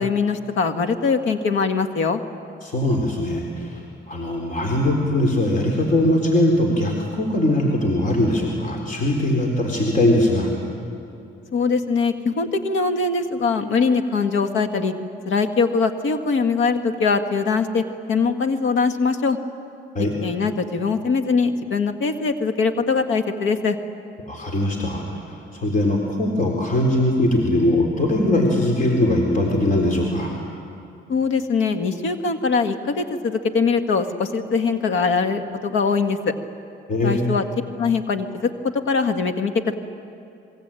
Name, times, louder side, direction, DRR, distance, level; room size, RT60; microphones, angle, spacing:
voice 1, 0.0-2.2 11.5-14.9 15.3-19.4 20.2-23.8 31.1-36.3 37.0-37.4 37.8-38.5 38.9-39.8, left 4 dB, 75° left, 7 dB, 1.8 m, -22 dB
voice 2, 2.6-3.8 4.1-10.5 19.9-20.1 24.3-30.3 36.9-37.3, left 1 dB, 40° left, 1 dB, 4.0 m, -21 dB
27.0 x 22.0 x 9.0 m, 2.7 s
cardioid pair, 90°, 20 cm